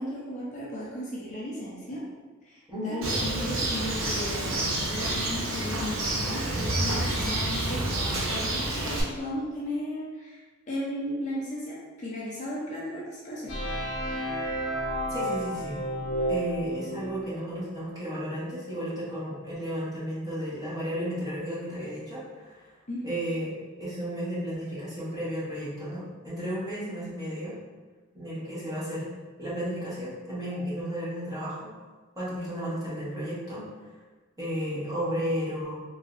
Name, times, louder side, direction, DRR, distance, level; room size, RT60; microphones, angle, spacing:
voice 1, 0.0-2.0 2.4-10.4 10.7-13.6 22.9-23.1, left 1 dB, 35° left, -6 dB, 0.6 m, -35 dB
voice 2, 2.7-3.0 15.1-15.8 16.3-22.7 23.0-27.6 28.1-29.1 29.4-31.7 32.1-33.7 34.4-35.7, equal, 15° right, -10 dB, 1.3 m, -33 dB
Bird, 3.0-9.0, right 1 dB, 65° right, 0.7 m, -29 dB
sound 1, 13.5-17.3, equal, 85° left, 0.8 m, -31 dB
3.8 x 3.1 x 2.5 m, 1.3 s
head